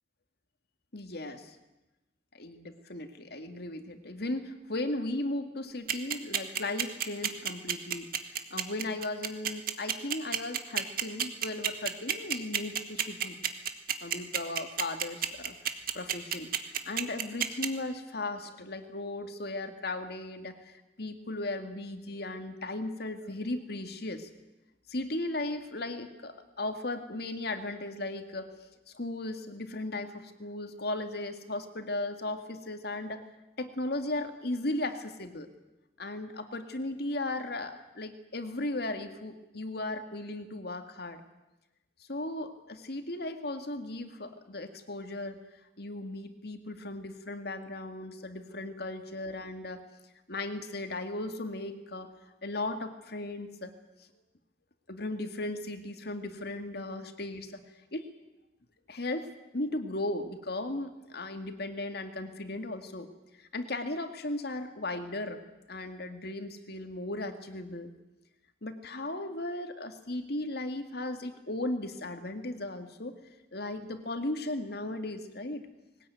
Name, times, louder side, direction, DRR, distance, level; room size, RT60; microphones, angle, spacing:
voice 1, 0.9-1.6 2.3-8.1 8.5-13.4 14.0-15.5 15.9-16.5 16.9-24.3 24.9-28.5 28.9-33.3 33.6-35.5 36.0-41.2 42.1-45.4 45.8-49.8 50.3-52.1 52.4-53.7 54.9-57.6 57.9-58.1 58.9-59.3 59.5-63.1 63.5-65.4 65.7-67.9 68.6-73.2 73.5-75.7, left 2 dB, 65° left, 7 dB, 2.3 m, -36 dB
sound 1, 5.9-17.7, right 10 dB, 55° right, 1.7 m, -29 dB
21.0 x 19.0 x 9.4 m, 1.0 s
head